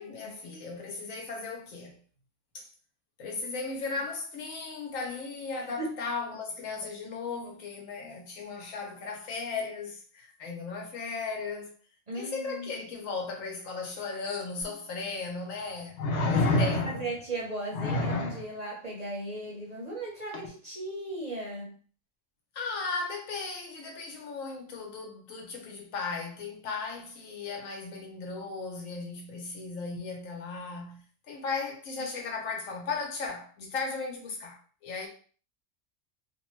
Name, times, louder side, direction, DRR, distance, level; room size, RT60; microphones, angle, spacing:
voice 1, 0.0-2.0 2.5-2.7 3.2-11.7 12.1-17.1 22.5-35.1, left 4 dB, 90° left, 1.1 m, -36 dB
voice 2, 12.1-12.8 16.3-21.7, right 2 dB, 40° right, 0.7 m, -37 dB
sound 1, 14.6-14.7 16.0-17.2 17.7-18.4 20.3-20.5, left 2 dB, 70° left, 0.8 m, -27 dB
2.6 x 2.2 x 3.0 m
omnidirectional pair, 1.3 m